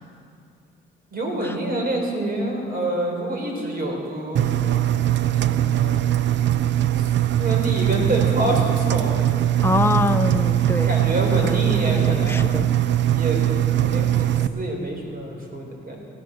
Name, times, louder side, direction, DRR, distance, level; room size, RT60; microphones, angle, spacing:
voice 1, 1.1-4.8 5.5-6.0 7.0-7.1 7.4-9.3 10.8-12.5 13.1-16.0, right 1 dB, 50° right, 1 dB, 4.1 m, -27 dB
Engine, 4.4-14.5, right 12 dB, 65° right, 0.6 m, -21 dB
voice 2, 9.6-11.0 11.4-12.7, left 3 dB, 10° left, 7 dB, 0.8 m, -25 dB
16.5 x 11.0 x 6.6 m, 2.5 s
cardioid pair, 90°, 20 cm